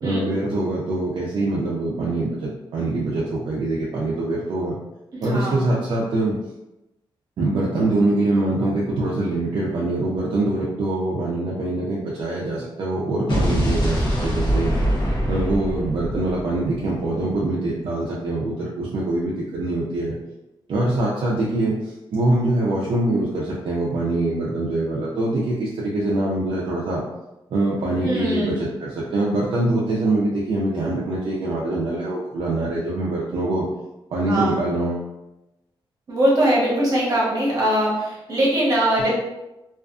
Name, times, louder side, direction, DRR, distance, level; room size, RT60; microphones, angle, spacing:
voice 1, 0.0-4.8 5.2-6.4 7.4-14.7 15.3-20.1 20.7-21.7 22.1-27.0 27.5-33.6 34.1-35.1, right 2 dB, 60° right, -5 dB, 0.4 m, -24 dB
voice 2, 5.2-5.6 28.0-28.6 34.3-34.6 36.1-39.1, right 1 dB, 40° right, -6 dB, 0.9 m, -21 dB
Explosion, 13.3-17.4, equal, 60° left, 0.6 m, -23 dB
2.4 x 2.3 x 2.4 m, 0.96 s
wide cardioid pair, 170°, 9 cm